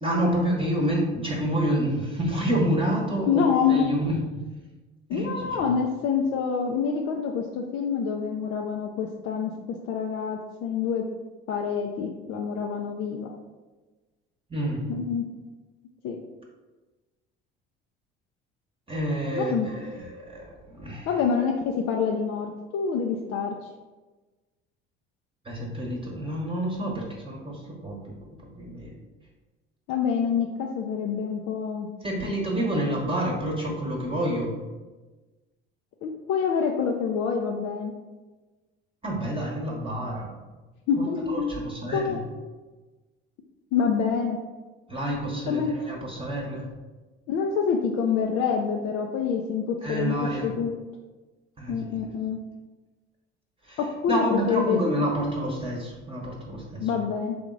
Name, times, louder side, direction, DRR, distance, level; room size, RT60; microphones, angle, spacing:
voice 1, 0.0-3.4 3.7-4.2 5.1-5.7 14.5-14.9 18.9-21.1 25.4-28.1 28.4-28.9 32.0-34.5 39.0-40.3 41.0-42.2 44.9-46.7 49.8-50.5 51.6-51.8 53.6-53.8 54.1-56.9, right 1 dB, 20° right, -3 dB, 1.0 m, -28 dB
voice 2, 3.3-3.9 5.1-9.5 9.8-11.0 11.5-13.3 14.9-15.2 16.0-16.2 19.3-19.7 21.1-23.5 29.9-31.9 36.0-37.9 40.9-41.5 41.9-42.2 43.7-44.4 45.5-45.7 47.3-50.2 50.4-50.8 51.7-52.4 53.8-54.8 56.8-57.4, left 6 dB, 55° left, 1 dB, 0.5 m, -26 dB
3.4 x 2.9 x 3.7 m, 1.2 s
hypercardioid pair, 60°, 30 cm